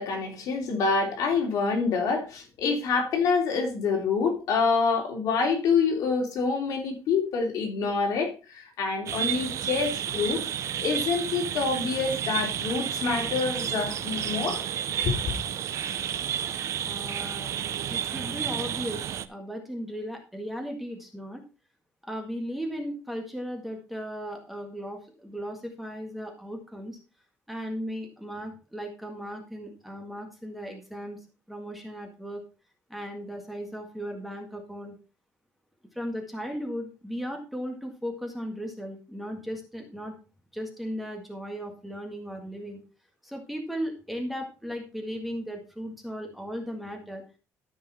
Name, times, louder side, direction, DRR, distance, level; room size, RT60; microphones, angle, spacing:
voice 1, 0.0-10.4 10.8-14.6 15.0-15.4, left 4 dB, 65° left, 3.4 m, -26 dB
sound 1, 9.1-19.3, right 9 dB, 50° right, 0.7 m, -31 dB
voice 2, 16.8-21.4 22.0-27.0 27.5-31.2 31.5-32.4 32.9-34.9 35.9-40.1 40.5-42.8 43.2-47.2, equal, ahead, 1.8 m, -36 dB
13.5 x 5.4 x 4.2 m
cardioid pair, 155°, 6 cm